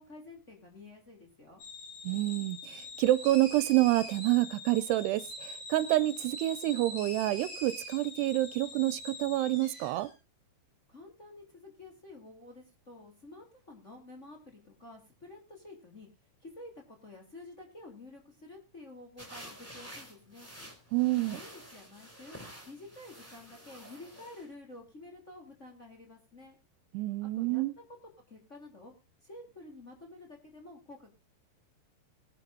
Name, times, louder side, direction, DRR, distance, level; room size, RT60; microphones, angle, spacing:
voice 1, 0.0-1.6 10.9-16.1 16.4-20.5 21.1-22.4 22.7-26.5 27.2-27.6 28.3-28.9 29.2-31.1, left 2 dB, 20° left, 2.7 m, -50 dB
sound 1, 1.6-10.1, left 1 dB, 70° left, 6.9 m, -44 dB
voice 2, 2.0-10.1 20.9-21.4 26.9-27.7, right 16 dB, 85° right, 2.8 m, -28 dB
sound 2, 19.2-24.5, equal, 5° left, 3.4 m, -49 dB
21.0 x 11.0 x 2.5 m
omnidirectional pair, 4.7 m